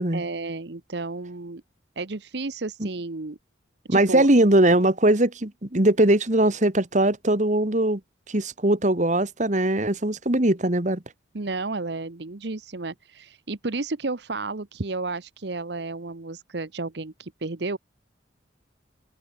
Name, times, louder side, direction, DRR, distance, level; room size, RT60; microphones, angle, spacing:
voice 1, 0.1-1.6 2.0-3.4 3.9-4.3 11.3-17.8, right 3 dB, 60° right, 1.0 m, -32 dB
voice 2, 3.9-8.0 8.3-11.0, right 1 dB, 40° right, 1.9 m, -21 dB
open air
head